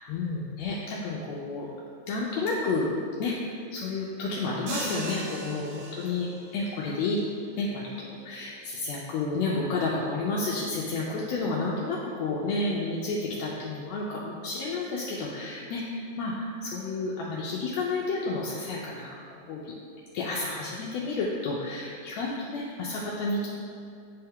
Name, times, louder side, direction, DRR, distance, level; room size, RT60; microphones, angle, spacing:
voice 1, 0.1-1.8 2.1-2.9 3.2-7.2 7.6-19.1 19.5-19.6 20.1-23.5, left 3 dB, 80° left, -4 dB, 1.6 m, -31 dB
sound 1, 4.7-6.5, right 2 dB, 70° right, 1.1 m, -37 dB
8.5 x 3.3 x 3.5 m, 2.5 s
omnidirectional pair, 3.5 m